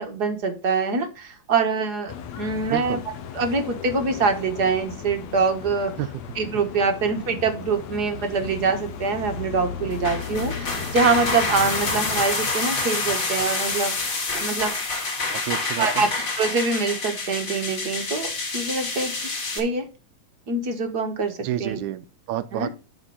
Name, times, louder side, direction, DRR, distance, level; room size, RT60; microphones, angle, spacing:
voice 1, 0.0-3.0 3.3-5.9 6.3-14.7 15.8-16.1 16.3-19.1 19.5-19.8 20.5-21.8 22.5-22.7, right 4 dB, 50° right, 1.2 m, -24 dB
sound 1, 2.1-12.2, left 7 dB, 65° left, 2.2 m, -36 dB
sound 2, 9.9-19.6, left 3 dB, 35° left, 3.1 m, -27 dB
voice 2, 15.3-16.0 21.4-22.8, right 13 dB, 75° right, 1.9 m, -29 dB
12.5 x 4.4 x 5.6 m
omnidirectional pair, 3.8 m